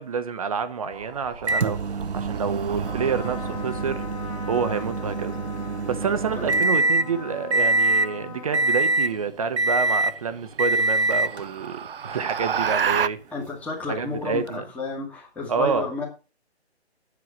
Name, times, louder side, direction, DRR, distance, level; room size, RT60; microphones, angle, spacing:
voice 1, 0.0-1.8 2.1-4.0 4.5-5.3 5.9-13.2 13.9-14.6 15.5-15.9, right 6 dB, 35° right, 0.9 m, -28 dB
sound 1, 0.9-4.4 6.7-7.2 9.3-9.4 9.9-10.0 10.5-13.1, right 7 dB, 55° right, 0.5 m, -31 dB
Microwave oven, 1.5-7.1 7.5-8.1 8.5-9.2 9.6-10.2 10.6-11.4 12.4-12.5 14.5-14.6, right 2 dB, 75° right, 0.8 m, -24 dB
Trumpet, 2.8-9.6, left 6 dB, 30° left, 1.0 m, -40 dB
voice 2, 13.3-16.0, left 3 dB, 5° left, 1.5 m, -31 dB
8.1 x 7.5 x 7.0 m
figure-of-eight pair, 145°, 33 cm